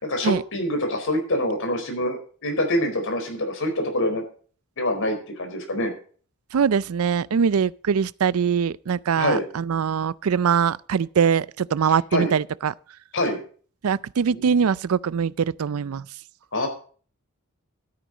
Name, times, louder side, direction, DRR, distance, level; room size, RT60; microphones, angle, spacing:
voice 1, 0.0-4.2 4.8-5.9 9.2-9.4 12.1-12.3 13.1-13.4 14.3-14.6 16.5-16.7, left 1 dB, 65° left, 4.3 m, -25 dB
voice 2, 6.5-12.7 13.8-16.1, right 6 dB, 75° right, 0.4 m, -22 dB
12.5 x 10.0 x 4.0 m
head